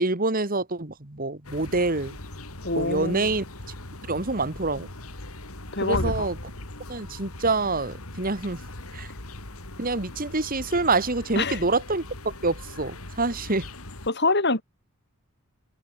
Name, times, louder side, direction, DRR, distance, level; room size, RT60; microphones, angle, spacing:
voice 1, 0.0-2.2 2.7-3.4 4.1-4.9 5.8-6.4 6.9-8.6 8.9-9.1 9.8-12.0 12.4-13.7, right 3 dB, 40° right, 1.9 m, -26 dB
sound 1, 1.4-14.1, left 1 dB, 85° left, 4.3 m, -39 dB
voice 2, 2.6-3.4 5.7-6.3 11.4-11.6 14.1-14.6, left 3 dB, 50° left, 4.3 m, -25 dB
open air
head